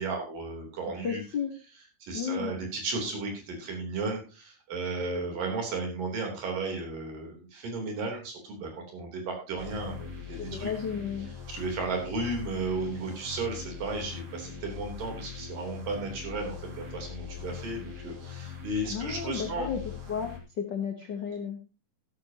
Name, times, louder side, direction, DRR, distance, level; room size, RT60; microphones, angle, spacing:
voice 1, 0.0-1.2 2.0-10.7 11.5-19.7, right 3 dB, 70° right, 2 dB, 5.0 m, -34 dB
voice 2, 1.0-1.5 2.1-2.5 10.4-11.3 18.8-19.8 20.1-21.6, left 7 dB, 75° left, 5 dB, 1.0 m, -33 dB
sound 1, 9.6-20.4, left 7 dB, 30° right, 2.6 m, -41 dB
14.0 x 12.5 x 2.9 m, 0.32 s
omnidirectional pair, 4.0 m